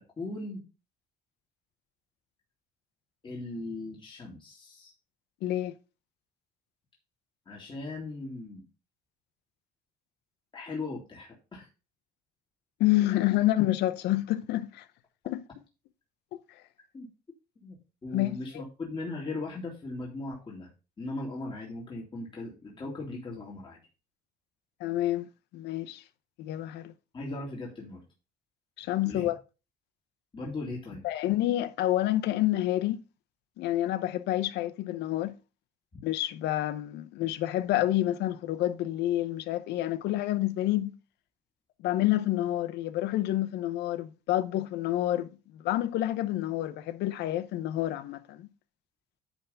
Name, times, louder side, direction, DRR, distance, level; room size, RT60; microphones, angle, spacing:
voice 1, 0.2-0.6 3.2-4.9 7.5-8.6 10.5-11.7 16.9-17.1 17.6-17.8 18.0-20.7 21.0-23.8 27.1-28.0 29.0-29.3 30.3-31.0 35.9-36.0, left 2 dB, 30° left, 2.5 m, -38 dB
voice 2, 5.4-5.7 12.8-14.8 15.3-15.4 18.1-18.6 24.8-26.0 26.4-26.9 28.8-29.4 31.0-33.0 33.6-35.3 36.0-40.9 41.8-48.5, left 14 dB, 80° left, 0.8 m, -28 dB
10.0 x 3.5 x 5.3 m
cardioid pair, 110°, 17 cm